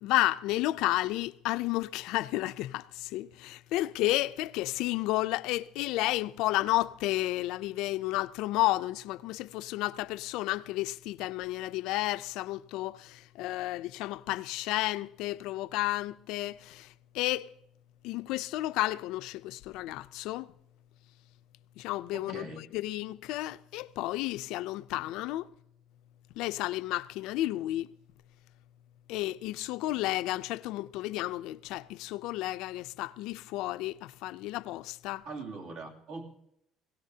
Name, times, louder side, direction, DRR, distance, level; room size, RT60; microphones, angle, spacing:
voice 1, 0.0-17.5 18.0-20.5 21.8-25.5 26.4-27.9 29.1-35.2, left 17 dB, 75° left, 0.4 m, -32 dB
voice 2, 22.1-22.6 35.2-36.3, right 3 dB, 65° right, 2.8 m, -42 dB
22.0 x 17.0 x 2.8 m
cardioid pair, 155°, 0 cm